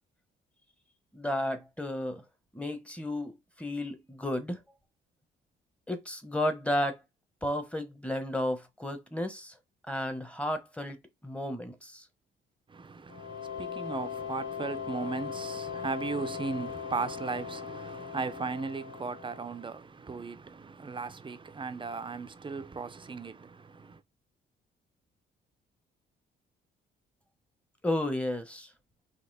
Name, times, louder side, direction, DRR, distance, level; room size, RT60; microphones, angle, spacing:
voice 1, 1.1-2.2 2.5-4.6 5.9-7.0 7.4-9.5 9.9-12.0 27.8-28.7, left 1 dB, 5° left, 1.2 m, -33 dB
voice 2, 12.7-24.0, right 4 dB, 25° right, 0.6 m, -37 dB
sound 1, 13.1-19.7, left 8 dB, 75° left, 0.7 m, -39 dB
4.2 x 2.9 x 4.1 m
cardioid pair, 90°, 20 cm